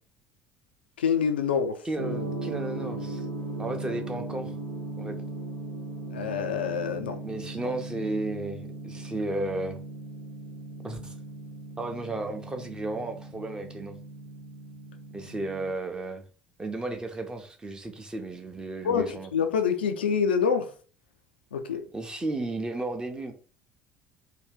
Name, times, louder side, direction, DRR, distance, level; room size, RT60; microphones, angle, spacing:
voice 1, 1.0-1.8 6.1-7.2 18.8-20.7 21.5-21.8, left 7 dB, 75° left, 0.3 m, -26 dB
voice 2, 1.8-3.3 3.6-4.5 5.0-5.2 7.2-9.8 10.8-11.1 11.8-14.0 15.1-16.2 16.6-19.3 21.9-23.3, right 2 dB, 15° right, 0.7 m, -33 dB
Gong, 2.0-15.7, right 2 dB, 85° right, 0.6 m, -38 dB
2.7 x 2.3 x 3.5 m
figure-of-eight pair, 60°, 6 cm